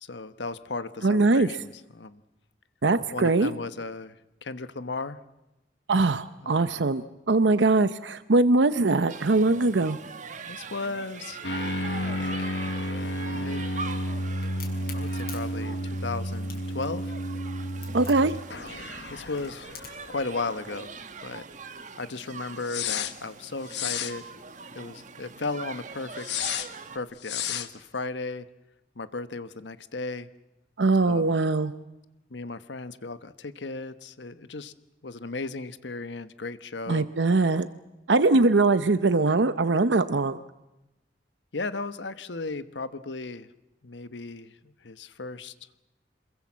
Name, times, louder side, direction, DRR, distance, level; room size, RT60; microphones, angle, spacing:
voice 1, 0.0-2.2 3.1-4.2 4.4-5.2 6.4-6.7 10.5-12.5 13.3-13.6 14.9-17.1 18.2-18.3 19.1-19.7 20.1-20.9 21.2-21.5 22.0-24.3 24.7-26.3 26.9-28.5 28.9-30.3 31.0-31.3 32.3-34.7 35.0-37.1 41.5-43.5 43.8-45.5, left 3 dB, 90° left, 12 dB, 1.2 m, -35 dB
voice 2, 1.0-1.5 2.8-3.5 5.9-10.0 17.9-18.3 30.8-31.7 36.9-37.7 38.1-40.4, right 3 dB, 85° right, 12 dB, 0.8 m, -22 dB
sound 1, 9.1-27.0, right 5 dB, 45° right, 1.4 m, -42 dB
sound 2, 11.4-20.6 20.9-21.0 22.7-23.1 23.7-24.1 26.2-26.7 27.2-27.7, left 2 dB, 70° left, 1.4 m, -32 dB
Crack, 14.4-20.1, left 8 dB, 55° left, 5.6 m, -46 dB
27.0 x 22.0 x 7.4 m, 0.96 s
head